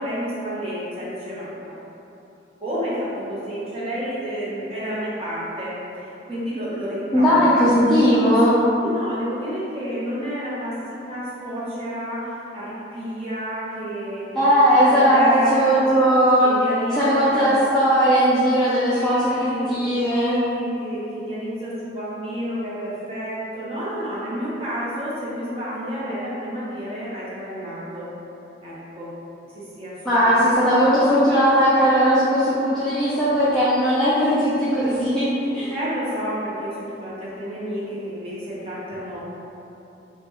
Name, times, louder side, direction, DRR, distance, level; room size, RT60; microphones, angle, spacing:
voice 1, 0.0-1.7 2.6-7.8 8.8-15.8 16.4-17.5 18.9-28.1 28.6-29.1 29.5-30.6 35.7-39.2, equal, 30° right, -9 dB, 1.0 m, -30 dB
voice 2, 7.1-8.6 14.3-16.5 17.0-20.4 30.0-35.7, equal, ahead, -13 dB, 0.5 m, -18 dB
3.4 x 2.5 x 4.5 m, 3.0 s
head